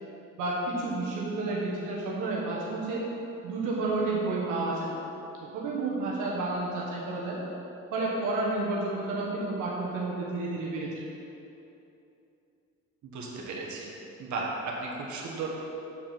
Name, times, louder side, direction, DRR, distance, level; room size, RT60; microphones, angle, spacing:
voice 1, 0.4-3.0 3.4-4.9 5.4-7.4 7.9-11.0, right 2 dB, 90° right, -5 dB, 1.3 m, -30 dB
voice 2, 13.0-13.9 14.2-15.5, right 3 dB, 70° right, -3 dB, 1.4 m, -35 dB
7.4 x 4.8 x 5.9 m, 2.9 s
cardioid pair, 90°, 30 cm